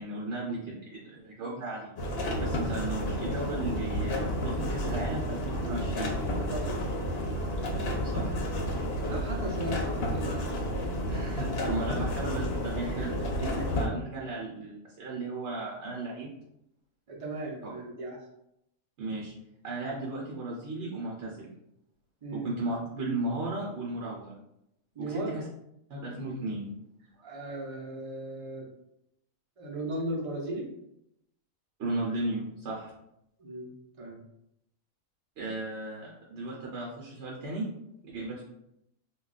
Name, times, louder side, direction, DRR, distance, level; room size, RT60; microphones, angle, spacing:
voice 1, 0.0-1.9 2.4-6.1 7.7-8.4 11.1-13.1 13.4-16.3 17.6-17.7 19.0-19.3 19.6-21.5 22.3-24.3 25.1-25.4 25.9-26.7 31.8-32.9 35.4-37.7 38.1-38.4, right 2 dB, 60° right, -3 dB, 0.9 m, -35 dB
sound 1, 2.0-13.9, equal, 60° left, 0.7 m, -31 dB
voice 2, 9.1-10.6 13.2-13.3 17.1-18.2 22.2-22.5 24.9-25.3 27.2-28.7 29.6-30.7 33.4-33.7 34.0-34.2, right 1 dB, 40° right, -2 dB, 0.5 m, -36 dB
2.2 x 2.2 x 3.8 m, 0.81 s
omnidirectional pair, 1.4 m